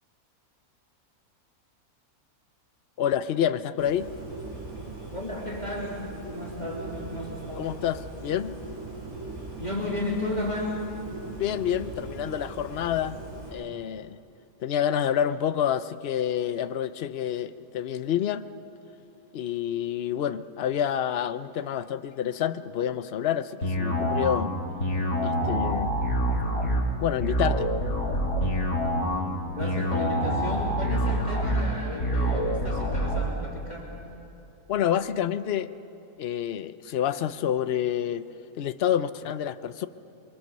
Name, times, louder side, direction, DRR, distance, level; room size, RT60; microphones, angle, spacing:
voice 1, 3.0-4.1 7.6-8.6 11.4-13.2 13.5-14.2 14.6-18.5 19.3-24.5 25.2-25.9 27.0-27.7 34.7-35.7 36.2-38.3 38.6-39.9, left 10 dB, 55° left, 13 dB, 0.8 m, -28 dB
Bird, 3.8-13.5, right 2 dB, 25° right, 7.8 m, -40 dB
voice 2, 5.1-7.8 9.6-10.8 29.5-33.9, left 1 dB, 30° left, -3 dB, 3.0 m, -33 dB
sound 1, 23.6-33.2, equal, 70° left, 3.5 m, -26 dB
27.5 x 23.5 x 6.8 m, 2.9 s
omnidirectional pair, 1.6 m